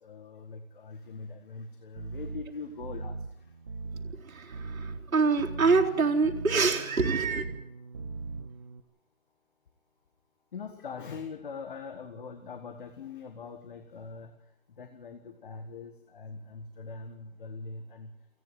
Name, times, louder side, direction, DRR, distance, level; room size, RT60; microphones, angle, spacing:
voice 1, 0.0-3.2 10.5-14.3 14.7-18.1, left 4 dB, 40° left, 7 dB, 1.7 m, -42 dB
sound 1, 2.0-8.8, right 4 dB, 25° right, 0.9 m, -40 dB
voice 2, 4.0-7.5, right 4 dB, 75° right, -1 dB, 4.0 m, -26 dB
28.5 x 10.5 x 9.4 m, 0.81 s
hypercardioid pair, 160°, 41 cm